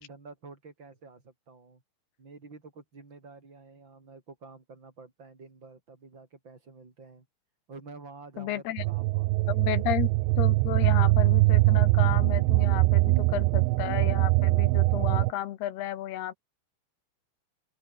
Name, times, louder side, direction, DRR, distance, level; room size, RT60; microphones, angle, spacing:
voice 1, 0.0-1.8 2.2-7.3 7.7-9.9, right 4 dB, 25° right, 5.2 m, -49 dB
voice 2, 8.4-8.8 9.5-10.1 10.4-16.3, left 13 dB, 70° left, 2.9 m, -33 dB
sound 1, 8.8-15.3, right 22 dB, 80° right, 2.7 m, -22 dB
open air
omnidirectional pair, 5.4 m